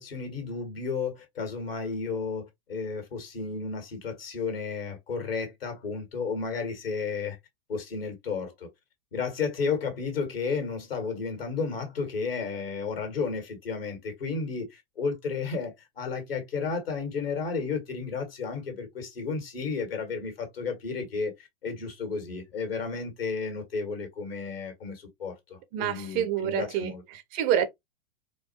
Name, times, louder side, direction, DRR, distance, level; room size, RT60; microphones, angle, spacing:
voice 1, 0.0-7.4 7.7-8.7 9.1-27.0, left 5 dB, 70° left, 1.7 m, -33 dB
voice 2, 25.7-27.7, right 10 dB, 30° right, 0.4 m, -28 dB
4.5 x 2.2 x 2.8 m
figure-of-eight pair, 100°, 30 cm